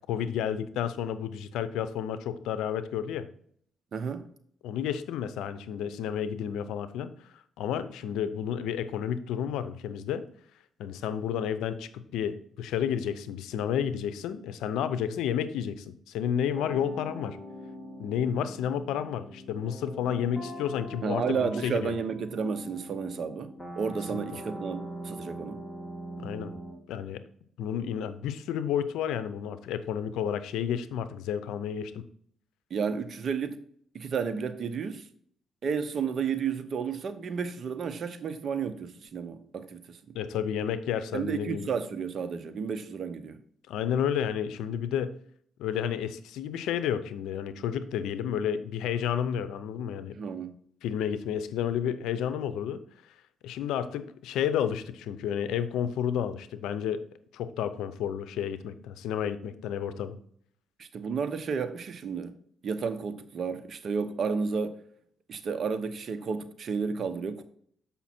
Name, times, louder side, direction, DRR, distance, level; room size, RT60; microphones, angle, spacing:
voice 1, 0.0-3.3 4.6-7.1 7.6-10.2 10.8-17.4 18.0-22.0 24.1-24.4 26.2-26.5 26.9-27.2 27.6-32.0 40.1-41.7 43.7-45.1 45.6-50.1 50.8-52.8 53.4-57.0 57.3-60.2, left 9 dB, 90° left, 0.6 m, -31 dB
voice 2, 3.9-4.2 21.0-23.5 23.8-25.6 32.7-33.6 33.9-35.1 35.6-40.0 41.1-43.4 50.1-50.5 60.8-62.3 62.6-64.8 65.3-67.4, right 6 dB, 55° right, 0.8 m, -32 dB
sound 1, 16.5-26.7, equal, ahead, 2.3 m, -42 dB
7.2 x 5.6 x 4.3 m
cardioid pair, 90°, 0 cm